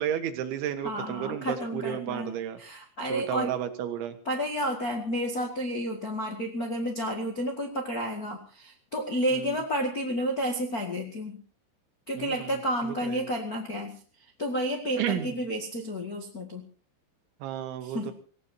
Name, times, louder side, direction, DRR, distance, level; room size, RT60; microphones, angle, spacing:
voice 1, 0.0-2.6 3.1-4.2 9.3-9.6 12.2-13.2 15.0-15.3 17.4-18.1, right 10 dB, 80° right, 8 dB, 3.9 m, -32 dB
voice 2, 0.8-3.6 4.2-11.4 12.1-14.0 14.4-16.6 17.8-18.1, equal, 65° left, 0 dB, 0.8 m, -31 dB
26.5 x 16.5 x 2.8 m, 0.42 s
omnidirectional pair, 5.3 m